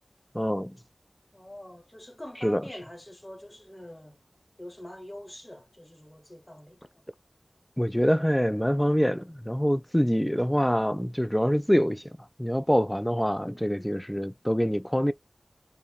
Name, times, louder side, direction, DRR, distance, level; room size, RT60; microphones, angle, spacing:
voice 1, 0.3-0.8 2.4-2.6 7.8-12.1 12.4-15.1, equal, 5° left, 0.3 m, -25 dB
voice 2, 1.3-4.2 4.6-7.0 13.6-13.9, left 1 dB, 25° left, 1.0 m, -45 dB
2.8 x 2.0 x 2.3 m
wide cardioid pair, 50°, 0 cm